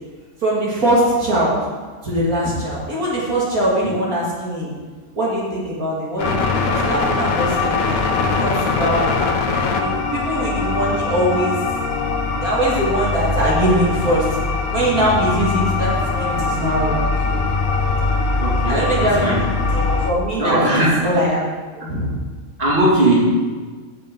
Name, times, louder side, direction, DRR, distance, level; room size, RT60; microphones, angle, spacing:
voice 1, 0.4-1.6 2.0-4.7 5.1-9.1 9.7-11.6 12.4-14.3 14.6-17.4 18.7-19.4 19.7-21.4 21.8-22.1, right 1 dB, 70° right, -6 dB, 2.6 m, -21 dB
sound 1, 6.2-20.1, left 4 dB, 70° left, 1.3 m, -21 dB
voice 2, 18.4-19.4 20.4-21.0 22.6-23.3, right 1 dB, 35° right, -6 dB, 2.7 m, -18 dB
9.6 x 6.9 x 5.4 m, 1.4 s
omnidirectional pair, 1.6 m